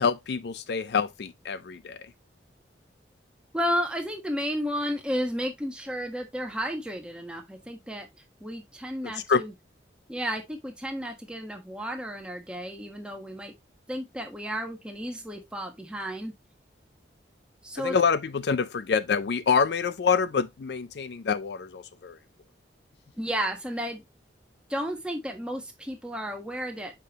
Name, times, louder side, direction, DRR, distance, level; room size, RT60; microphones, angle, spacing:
voice 1, 0.0-2.1 9.0-9.4 17.8-22.2, left 6 dB, 65° left, 0.4 m, -26 dB
voice 2, 3.5-8.1 8.4-9.5 10.1-13.5 13.9-16.3 17.6-18.0 23.2-24.0 24.7-27.0, equal, 5° right, 1.2 m, -32 dB
6.6 x 5.2 x 3.0 m
head